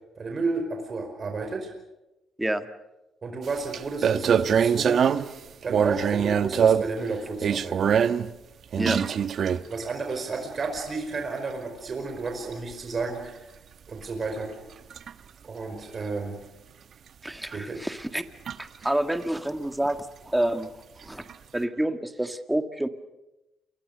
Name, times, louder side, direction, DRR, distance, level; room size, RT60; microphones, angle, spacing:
voice 1, 0.1-1.7 3.2-5.0 5.6-7.9 8.9-9.0 9.7-13.4 13.9-14.5 15.4-16.4 17.5-17.8, right 3 dB, 40° right, 3 dB, 5.1 m, -32 dB
sound 1, 3.5-3.6 3.7-5.4 5.7-7.0 7.4-8.3 8.7-9.9 10.6-10.8 12.5-12.7 14.4-14.5 14.9-15.1 17.5-17.6 18.0-18.1 18.5-18.9 21.3-21.4, right 7 dB, 60° right, 1.1 m, -23 dB
voice 2, 17.2-18.3 18.6-20.7 21.0-21.3 21.5-22.9, right 1 dB, 10° right, 8 dB, 1.7 m, -28 dB
29.0 x 23.5 x 6.8 m, 0.99 s
cardioid pair, 90°, 0 cm